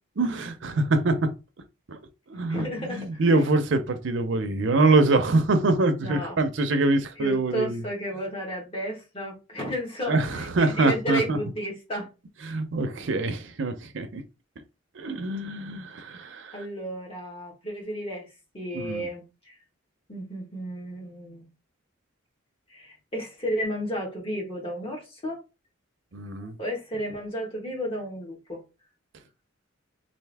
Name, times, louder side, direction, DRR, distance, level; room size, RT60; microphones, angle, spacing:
voice 1, 0.2-1.3 1.9-2.0 2.3-7.8 10.1-11.4 12.4-14.2 15.0-16.6 18.7-19.1 26.1-26.6, right 2 dB, 65° right, 0.6 m, -24 dB
voice 2, 2.5-3.2 6.0-6.4 7.2-12.1 16.5-18.3 18.5-19.6 20.1-21.5 22.7-25.4 26.6-28.6, equal, 30° left, 1.4 m, -33 dB
3.4 x 2.6 x 3.4 m
head